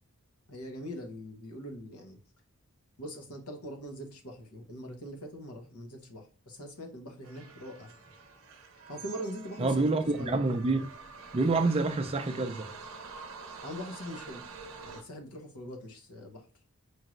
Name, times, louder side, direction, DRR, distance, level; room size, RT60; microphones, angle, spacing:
voice 1, 0.5-2.2 3.0-8.0 8.9-10.4 13.6-14.4 14.8-16.5, equal, 90° left, 1.0 m, -42 dB
sound 1, 7.2-15.0, right 4 dB, 65° right, 0.6 m, -47 dB
voice 2, 9.6-10.9 11.3-12.7, right 3 dB, 25° right, 0.4 m, -27 dB
4.6 x 3.1 x 2.4 m
head